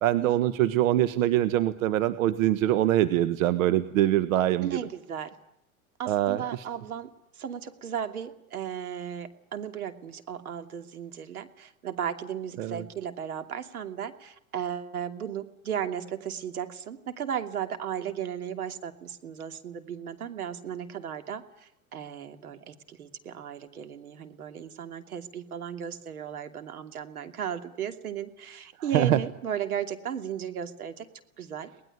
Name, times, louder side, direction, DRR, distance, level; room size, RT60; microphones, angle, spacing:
voice 1, 0.0-4.8 6.1-6.6 12.6-12.8 28.9-29.2, right 13 dB, 65° right, 12 dB, 1.5 m, -24 dB
voice 2, 4.6-5.3 6.0-31.1 31.4-31.7, right 8 dB, 85° right, 7 dB, 2.8 m, -35 dB
23.0 x 19.5 x 9.7 m, 0.79 s
hypercardioid pair, 100°, 43 cm